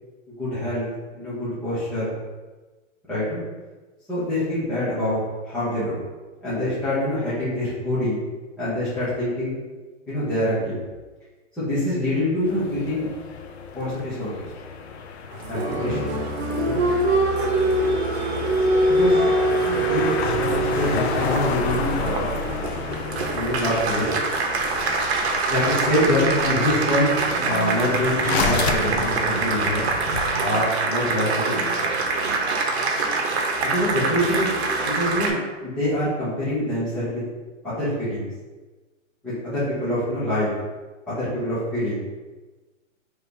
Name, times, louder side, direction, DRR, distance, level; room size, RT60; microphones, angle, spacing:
voice 1, 0.4-0.9 1.1-2.2 3.1-3.4 4.1-5.2 5.4-5.9 6.4-8.2 8.6-9.5 10.1-10.8 11.6-13.1 13.7-14.3 15.5-16.1 16.6-16.8 18.9-19.2 19.6-22.3 23.3-24.1 25.5-29.9 30.4-31.9 33.6-34.5 34.8-35.4 35.6-37.2 37.6-38.3 39.2-40.5 41.1-42.0, left 1 dB, 5° left, -14 dB, 0.3 m, -25 dB
sound 1, 12.4-30.3, left 4 dB, 55° left, 0.5 m, -31 dB
Applause, 15.3-35.3, right 2 dB, 55° right, 0.8 m, -24 dB
3.2 x 2.6 x 4.5 m, 1.2 s
hypercardioid pair, 145°, 39 cm